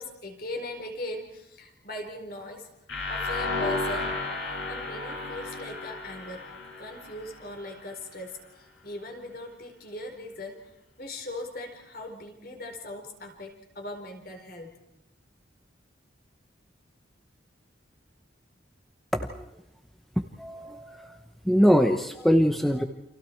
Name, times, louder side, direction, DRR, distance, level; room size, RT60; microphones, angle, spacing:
voice 1, 0.0-2.7 3.1-4.1 4.4-6.5 6.8-14.8, left 1 dB, 50° left, 3 dB, 4.6 m, -39 dB
sound 1, 2.9-7.8, left 3 dB, 70° left, 7.0 m, -33 dB
voice 2, 20.2-21.2 21.4-22.9, equal, ahead, 4 dB, 0.9 m, -23 dB
29.5 x 28.0 x 4.6 m, 0.86 s
head